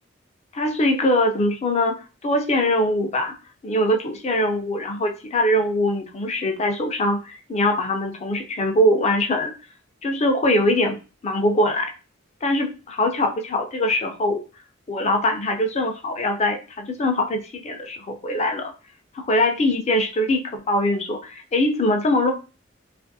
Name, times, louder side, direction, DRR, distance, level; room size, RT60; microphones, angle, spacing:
voice 1, 0.5-1.9 2.2-3.3 3.6-9.5 10.0-11.0 11.2-11.9 12.4-14.4 14.9-18.7 19.1-22.3, left 1 dB, 35° left, 4 dB, 0.5 m, -22 dB
2.5 x 2.5 x 2.6 m, 0.32 s
head